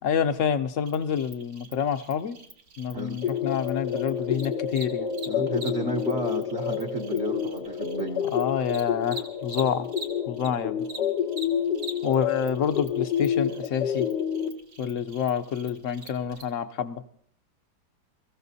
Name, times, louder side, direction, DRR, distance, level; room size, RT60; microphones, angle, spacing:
voice 1, 0.0-2.4 2.8-5.1 8.3-9.9 10.3-10.9 12.0-14.1 14.8-17.0, left 8 dB, 60° left, 11 dB, 1.0 m, -28 dB
Cricket, 0.9-10.5 10.8-16.4, right 2 dB, 80° right, 2.4 m, -44 dB
sound 1, 3.2-14.5, left 8 dB, 90° left, 1.7 m, -29 dB
voice 2, 5.3-8.2, right 2 dB, 45° right, 1 dB, 1.1 m, -32 dB
24.0 x 14.5 x 2.7 m, 0.64 s
omnidirectional pair, 1.7 m